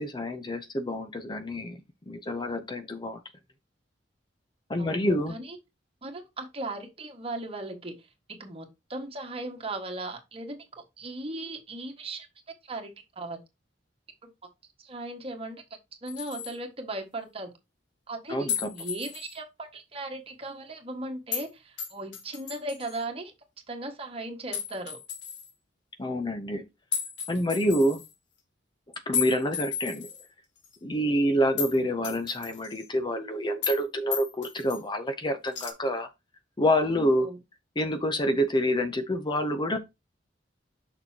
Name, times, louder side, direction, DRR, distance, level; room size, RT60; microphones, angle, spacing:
voice 1, 0.0-1.8 2.1-3.2 4.7-5.4 18.3-18.7 26.0-26.6 27.3-28.0 29.1-30.1 30.8-36.1 36.6-37.3 37.8-39.8, equal, 25° left, 0.6 m, -27 dB
voice 2, 4.8-5.6 6.0-8.0 8.3-12.3 12.7-13.4 14.2-14.3 14.8-15.6 16.0-17.5 18.1-23.3 23.7-25.0 36.9-37.4, right 2 dB, 35° right, 1.6 m, -37 dB
sound 1, 16.1-16.5 18.5-19.4 21.3-21.5 21.8-23.0 24.5-25.5 26.9-28.1 29.1-30.2 30.6-30.8 31.6-31.8 32.0-32.9 33.6-33.8 34.1-34.8 35.5-35.7, left 7 dB, 75° left, 1.5 m, -34 dB
6.6 x 6.2 x 2.8 m
head